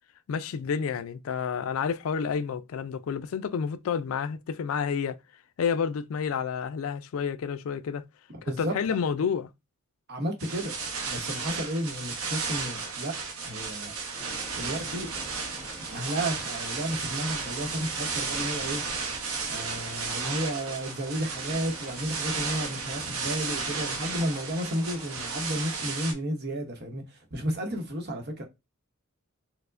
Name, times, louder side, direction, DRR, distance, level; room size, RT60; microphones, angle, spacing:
voice 1, 0.3-5.2 5.6-8.0 8.4-9.5, left 6 dB, 70° left, 0.3 m, -30 dB
voice 2, 8.5-9.0 10.1-10.7 11.1-13.1 13.4-13.9 14.5-15.1 15.8-18.8 19.5-28.4, right 1 dB, 50° right, 0.9 m, -32 dB
sound 1, 10.4-26.1, right 4 dB, 85° right, 0.8 m, -34 dB
sound 2, 14.1-25.5, equal, 5° right, 1.1 m, -47 dB
4.5 x 2.1 x 2.5 m
head